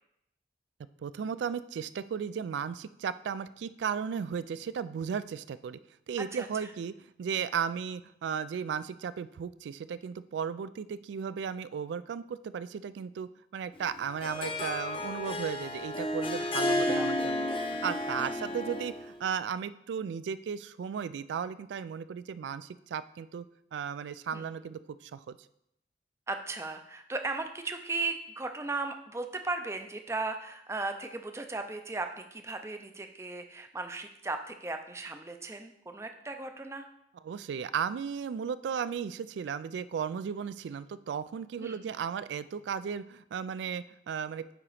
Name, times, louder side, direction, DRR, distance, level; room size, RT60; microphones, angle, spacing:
voice 1, 1.0-5.8 6.1-23.4 23.7-25.4 37.2-44.6, right 7 dB, 85° right, 15 dB, 0.3 m, -35 dB
voice 2, 6.3-6.7 16.6-17.1 18.2-18.5 24.3-24.5 26.3-36.9 41.6-41.8, right 3 dB, 15° right, 6 dB, 0.4 m, -37 dB
Harp, 13.8-19.1, left 1 dB, 30° left, 0.6 m, -32 dB
8.8 x 2.9 x 4.8 m, 0.78 s
head